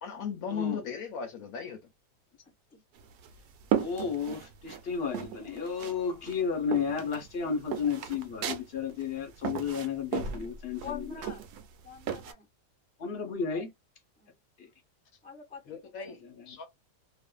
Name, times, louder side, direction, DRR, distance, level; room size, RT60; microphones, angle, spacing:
voice 1, 0.0-1.8 15.7-16.7, left 6 dB, 70° left, 1.0 m, -37 dB
sound 1, 3.0-4.8 5.1-6.0 6.3-12.3, right 8 dB, 80° right, 1.1 m, -35 dB
voice 2, 3.8-11.0 13.0-13.7 14.6-14.7, left 6 dB, 45° left, 0.9 m, -32 dB
voice 3, 10.8-11.4 11.8-12.5 14.2-14.4 15.2-16.2, left 6 dB, 10° left, 0.5 m, -45 dB
2.5 x 2.4 x 2.2 m
omnidirectional pair, 1.7 m